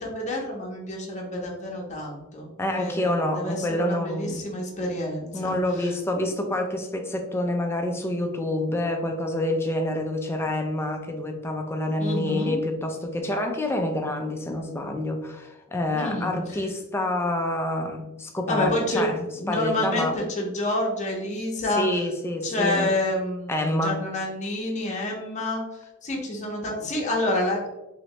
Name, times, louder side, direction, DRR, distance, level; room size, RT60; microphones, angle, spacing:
voice 1, 0.0-5.9 12.0-12.6 15.9-16.3 18.5-19.1 19.3-21.9 22.4-25.6 26.0-27.7, left 1 dB, 35° left, -1 dB, 0.7 m, -28 dB
voice 2, 2.6-4.5 5.3-20.2 21.8-22.9 23.5-24.0, left 1 dB, 10° left, 3 dB, 0.4 m, -27 dB
3.1 x 2.7 x 3.0 m, 0.98 s
head